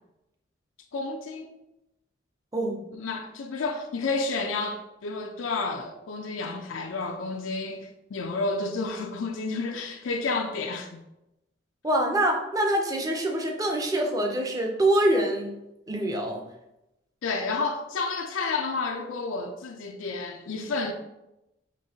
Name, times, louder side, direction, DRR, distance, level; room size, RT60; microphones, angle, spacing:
voice 1, 0.9-1.5 2.9-10.9 17.2-20.9, left 3 dB, 90° left, 0.4 m, -30 dB
voice 2, 2.5-2.9 11.8-15.5 15.9-16.4, right 1 dB, 20° right, 0.5 m, -25 dB
5.2 x 3.1 x 2.7 m
head